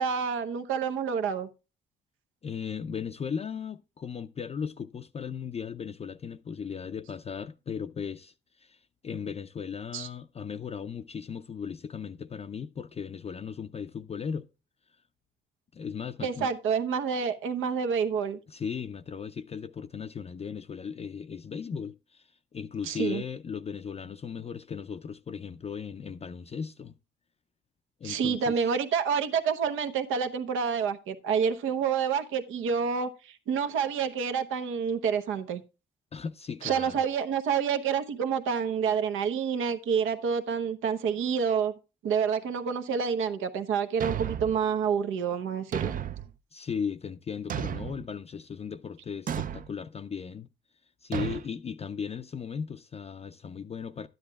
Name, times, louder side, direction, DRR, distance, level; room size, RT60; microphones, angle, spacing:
voice 1, 0.0-1.5 9.9-10.1 16.2-18.4 22.8-23.2 28.0-35.6 36.6-41.7 42.0-45.9, right 6 dB, 85° right, 0.9 m, -28 dB
voice 2, 2.4-14.5 15.7-16.5 18.5-27.0 28.0-28.6 36.1-37.0 46.5-50.5 51.0-54.1, left 6 dB, 30° left, 0.4 m, -37 dB
Thump thud, 44.0-44.6 45.7-46.3 47.5-48.1 49.3-49.7 51.1-51.5, right 9 dB, 45° right, 0.4 m, -33 dB
12.0 x 10.0 x 2.3 m
cardioid pair, 90°, 20 cm